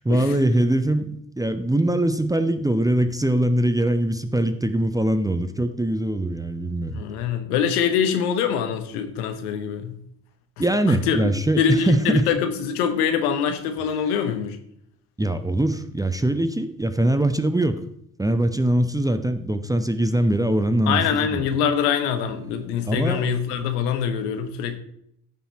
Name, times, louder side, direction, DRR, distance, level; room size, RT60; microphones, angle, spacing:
voice 1, 0.0-7.0 10.6-12.3 15.2-17.8 18.2-21.5 22.9-23.3, right 1 dB, 10° right, 10 dB, 0.8 m, -22 dB
voice 2, 6.9-10.0 10.9-14.6 20.9-24.8, left 7 dB, 70° left, 8 dB, 1.3 m, -24 dB
14.5 x 5.8 x 4.3 m, 0.72 s
figure-of-eight pair, 50°, 47 cm